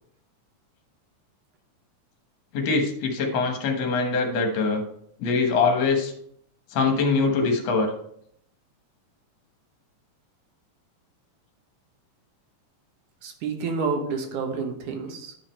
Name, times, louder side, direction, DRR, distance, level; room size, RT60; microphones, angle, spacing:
voice 1, 2.5-4.8 5.2-6.1 6.7-7.9, left 4 dB, 65° left, 3 dB, 2.2 m, -23 dB
voice 2, 13.2-15.4, right 4 dB, 80° right, 5 dB, 2.6 m, -29 dB
9.5 x 5.0 x 4.3 m, 0.69 s
omnidirectional pair, 3.5 m